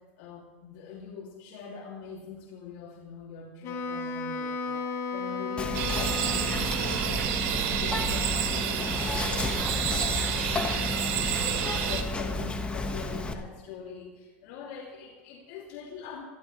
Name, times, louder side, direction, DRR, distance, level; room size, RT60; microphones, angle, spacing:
voice 1, 0.0-16.2, left 6 dB, 65° left, -1 dB, 2.9 m, -43 dB
Wind instrument woodwind instrument, 3.6-7.2, left 3 dB, 50° left, 2.1 m, -34 dB
Whispering, 5.6-13.3, left 2 dB, 20° left, 1.7 m, -32 dB
sound 1, 5.7-12.0, right 9 dB, 55° right, 1.9 m, -29 dB
28.0 x 11.5 x 3.3 m, 1.2 s
hypercardioid pair, 105°, 6 cm